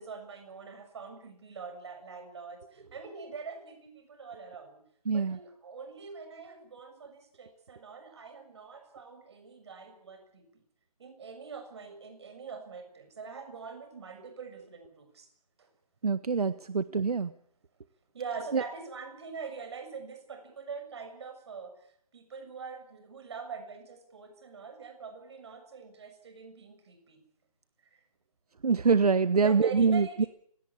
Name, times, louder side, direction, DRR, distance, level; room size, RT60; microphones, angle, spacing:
voice 1, 0.0-10.6 11.0-15.3 15.6-15.7 18.1-21.9 22.1-27.2 29.4-30.3, right 5 dB, 45° right, 7 dB, 6.9 m, -43 dB
voice 2, 5.1-5.4 16.0-17.3 18.5-18.6 28.6-30.3, right 5 dB, 75° right, 14 dB, 1.2 m, -25 dB
29.0 x 17.5 x 8.6 m, 0.66 s
hypercardioid pair, 165°, 20 cm